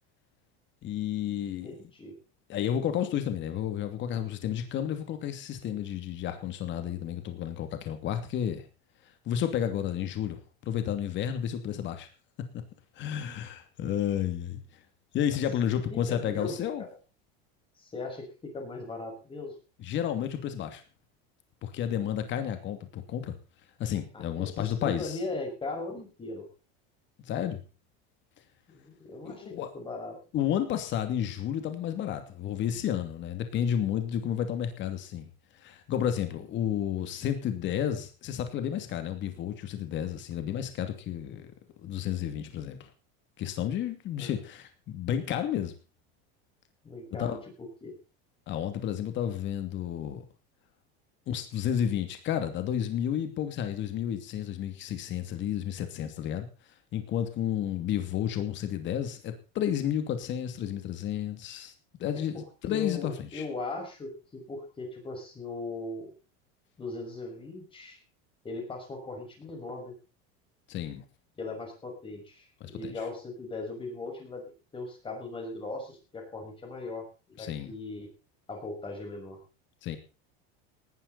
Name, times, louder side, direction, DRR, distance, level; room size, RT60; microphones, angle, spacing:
voice 1, 0.8-1.7 2.5-8.6 9.3-12.1 13.0-14.6 15.1-16.8 19.8-20.8 21.6-23.4 23.8-25.2 27.3-27.6 29.2-29.7 30.3-35.3 35.6-41.5 41.8-42.8 43.4-45.7 47.2-47.4 48.5-50.2 51.3-56.5 56.9-61.7 62.0-63.5 70.7-71.0 72.6-72.9 77.4-77.7 79.8-80.0, left 10 dB, 40° left, 8 dB, 2.6 m, -31 dB
voice 2, 1.6-2.1 15.9-16.9 17.8-19.5 24.1-26.5 28.7-30.2 44.2-44.3 46.8-47.9 62.3-66.1 66.8-68.0 68.4-70.0 71.4-74.4 74.7-78.1 78.5-79.4, left 3 dB, 15° left, 3 dB, 6.1 m, -39 dB
18.5 x 12.0 x 4.2 m, 0.33 s
supercardioid pair, 150°, 30 cm